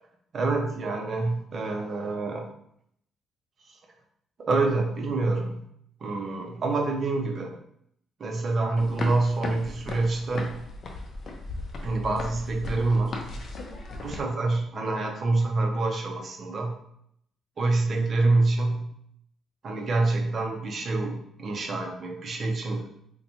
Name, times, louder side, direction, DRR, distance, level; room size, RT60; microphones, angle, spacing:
voice 1, 0.3-2.4 4.4-5.6 6.0-7.5 8.2-10.6 11.8-13.2 14.0-16.7 17.6-18.9 19.6-22.9, right 3 dB, 50° right, 3 dB, 0.6 m, -26 dB
sound 1, 8.8-14.2, left 2 dB, 50° left, 0.5 m, -36 dB
4.1 x 2.2 x 2.7 m, 0.71 s
cardioid pair, 90°, 0 cm